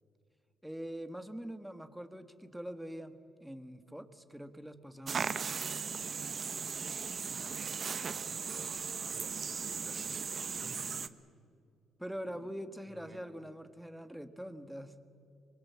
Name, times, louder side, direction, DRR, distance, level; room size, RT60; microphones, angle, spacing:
voice 1, 0.6-5.3 12.0-15.0, equal, 5° right, 9 dB, 1.6 m, -44 dB
sound 1, 5.1-11.1, right 6 dB, 45° right, 0.9 m, -37 dB
voice 2, 7.3-8.6 9.1-11.1 12.3-12.5 12.9-13.2, right 2 dB, 25° right, 2 dB, 3.7 m, -55 dB
24.5 x 21.0 x 7.5 m, 2.5 s
cardioid pair, 80°, 0 cm